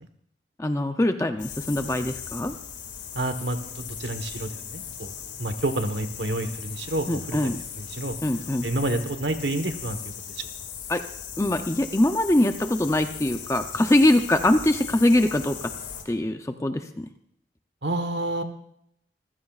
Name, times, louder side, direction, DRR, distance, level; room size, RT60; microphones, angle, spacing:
voice 1, 0.6-2.5 7.1-7.6 8.2-8.7 10.9-11.0 11.4-15.6 16.1-17.1, left 1 dB, 15° left, 7 dB, 0.5 m, -23 dB
sound 1, 1.4-16.0, left 7 dB, 70° left, 2.1 m, -38 dB
voice 2, 3.1-5.1 5.4-8.2 8.6-10.0 10.4-10.5 17.8-18.4, right 1 dB, 70° right, 8 dB, 1.3 m, -29 dB
25.5 x 15.0 x 2.4 m, 0.72 s
head